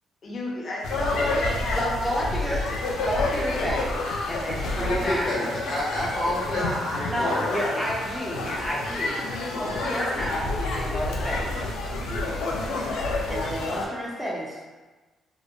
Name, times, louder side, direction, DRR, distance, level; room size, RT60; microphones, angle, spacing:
voice 1, 0.2-1.8 6.5-7.0 7.3-7.9, left 2 dB, 45° left, -4 dB, 0.7 m, -32 dB
sound 1, 0.8-13.9, left 2 dB, 85° left, 0.4 m, -29 dB
voice 2, 1.7-2.7 3.1-5.4 7.1-9.3 9.5-11.6 13.3-14.6, equal, ahead, -5 dB, 0.5 m, -30 dB
voice 3, 4.7-7.6 9.6-9.9 12.2-12.6, left 1 dB, 70° left, -6 dB, 1.1 m, -30 dB
2.8 x 2.0 x 2.4 m, 1.2 s
cardioid pair, 90°, 0 cm